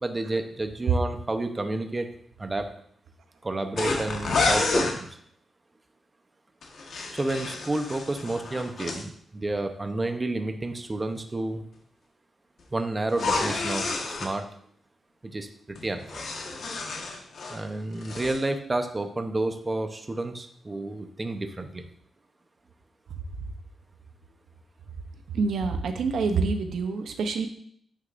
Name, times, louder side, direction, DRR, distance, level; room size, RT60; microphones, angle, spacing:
voice 1, 0.0-2.1 2.4-2.7 3.4-5.1 7.1-11.6 12.7-13.9 14.2-14.5 15.2-16.2 17.5-21.9, right 2 dB, 25° right, 6 dB, 0.8 m, -30 dB
sound 1, 3.8-5.0 6.6-9.0 13.1-14.3 15.8-17.6 17.9-18.4, left 3 dB, 70° left, 1.3 m, -29 dB
voice 2, 25.3-27.5, right 4 dB, 80° right, 7 dB, 0.7 m, -26 dB
9.3 x 6.5 x 2.6 m, 0.63 s
cardioid pair, 100°, 0 cm